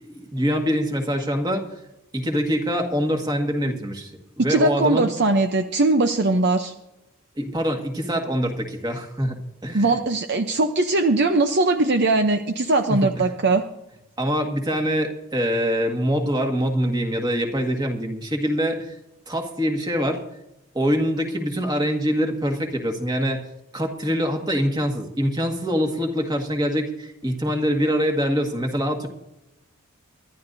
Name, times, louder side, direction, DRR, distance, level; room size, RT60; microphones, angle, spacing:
voice 1, 0.0-1.6 2.1-4.1 4.4-5.1 7.3-9.4 9.6-10.0 12.9-13.2 14.2-19.0 19.3-20.2 20.7-23.4 23.7-29.1, equal, 20° right, 3 dB, 1.8 m, -24 dB
voice 2, 4.5-6.7 9.7-13.6, right 2 dB, 50° right, 7 dB, 0.7 m, -20 dB
24.0 x 11.5 x 2.7 m, 0.89 s
head